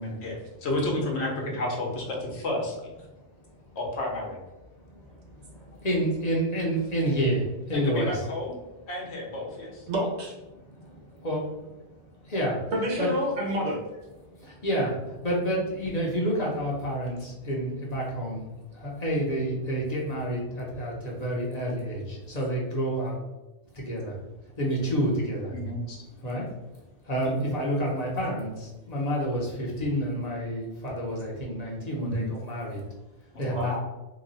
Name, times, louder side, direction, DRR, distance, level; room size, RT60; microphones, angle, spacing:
voice 1, 0.0-2.6 3.7-4.4 7.7-8.6 8.9-9.8 25.5-26.0 32.0-32.3 33.3-33.6, left 1 dB, 70° left, -1 dB, 1.1 m, -31 dB
voice 2, 5.5-8.1 10.8-10.9 11.2-11.4 12.2-12.7 13.0-13.1 14.4-18.4 18.7-23.2 23.7-24.1 24.6-25.5 26.2-26.4 27.0-32.8 33.4-33.8, equal, 40° left, -3 dB, 0.9 m, -29 dB
voice 3, 9.9-10.3 12.7-13.8 27.2-27.4 33.5-33.8, equal, 75° right, 0 dB, 1.2 m, -28 dB
3.0 x 2.3 x 4.0 m, 1.0 s
omnidirectional pair, 1.2 m